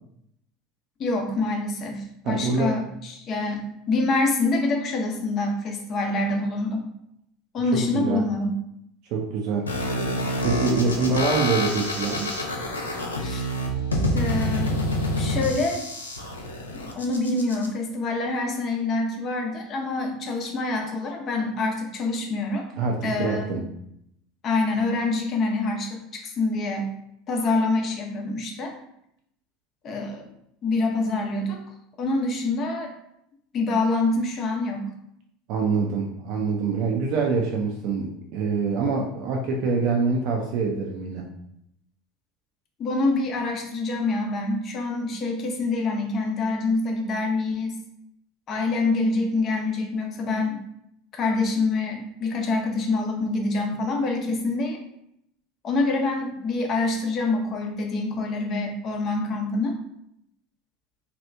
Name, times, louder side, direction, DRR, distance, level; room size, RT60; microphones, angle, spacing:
voice 1, 1.0-6.9 7.5-8.6 13.2-13.5 14.1-14.8 15.2-15.8 16.7-22.6 23.0-23.5 24.4-26.9 27.3-28.7 29.8-30.2 30.6-31.6 32.0-32.9 33.5-34.9 42.8-47.8 48.5-50.6 51.1-54.8 55.6-59.8, left 3 dB, 40° left, 2 dB, 0.7 m, -26 dB
voice 2, 2.2-2.7 7.7-8.2 9.1-9.7 10.4-12.3 22.8-23.6 35.5-41.3, right 4 dB, 55° right, 0 dB, 0.5 m, -25 dB
sound 1, 9.7-17.7, equal, 90° left, 0.4 m, -27 dB
2.9 x 2.4 x 3.3 m, 0.76 s
hypercardioid pair, 75°, 0 cm